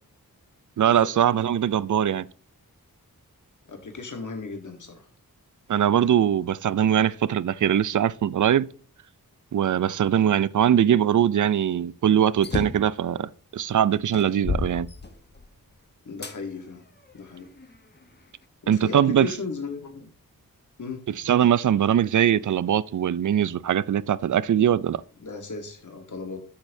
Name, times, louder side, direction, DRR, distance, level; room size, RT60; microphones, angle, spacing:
voice 1, 0.8-2.3 5.7-8.7 9.5-14.9 18.7-19.3 21.2-25.0, right 9 dB, 55° right, 0.4 m, -21 dB
voice 2, 3.6-5.1 16.0-16.8 17.1-17.5 18.6-20.1 20.8-21.1 25.2-26.4, left 4 dB, 55° left, 1.3 m, -36 dB
sound 1, 12.4-12.9 13.6-13.7 14.1-15.6 16.2-16.4 17.1-18.1, left 3 dB, 30° left, 1.0 m, -31 dB
10.5 x 6.8 x 2.6 m
cardioid pair, 45°, 37 cm